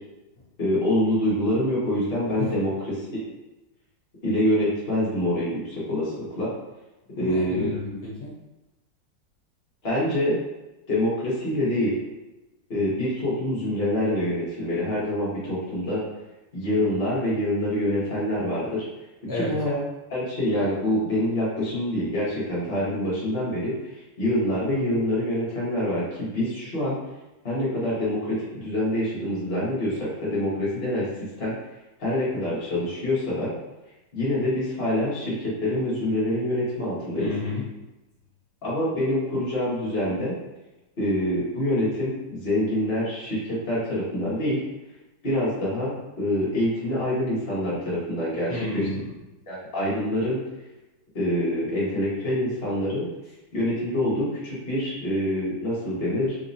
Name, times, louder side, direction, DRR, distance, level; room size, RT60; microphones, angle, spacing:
voice 1, 0.6-3.3 4.2-6.5 7.2-7.7 9.8-10.4 10.9-12.0 12.7-16.0 16.5-18.8 19.3-19.8 20.1-23.7 24.2-27.0 27.4-31.1 31.4-31.5 32.0-33.5 34.1-37.3 38.6-40.3 41.0-44.6 45.2-48.8 49.5-50.4 51.1-53.1 53.5-56.4, left 1 dB, 35° left, -9 dB, 1.4 m, -26 dB
voice 2, 7.1-8.3 19.3-19.6 37.2-37.7 48.5-49.1, left 2 dB, 65° left, -7 dB, 1.4 m, -31 dB
4.1 x 2.8 x 2.6 m, 1.0 s
omnidirectional pair, 1.9 m